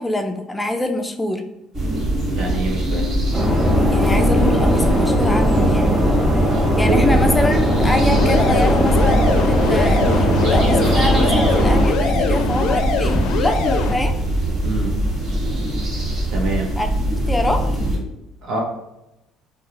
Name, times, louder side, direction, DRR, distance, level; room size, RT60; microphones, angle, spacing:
voice 1, 0.0-1.4 3.9-5.9 6.8-14.1 16.8-17.6, left 2 dB, 15° left, 5 dB, 0.4 m, -24 dB
sound 1, 1.7-18.0, right 1 dB, 50° right, 1.4 m, -22 dB
voice 2, 2.3-3.1 6.8-7.1 14.6-14.9 16.3-16.7 18.4-18.6, right 2 dB, 65° right, -1 dB, 0.8 m, -24 dB
sound 2, 3.3-11.8, equal, 20° right, 0.7 m, -19 dB
sound 3, 8.1-13.9, left 4 dB, 80° left, 0.4 m, -23 dB
2.3 x 2.3 x 3.0 m, 0.91 s
supercardioid pair, 90°, 0 cm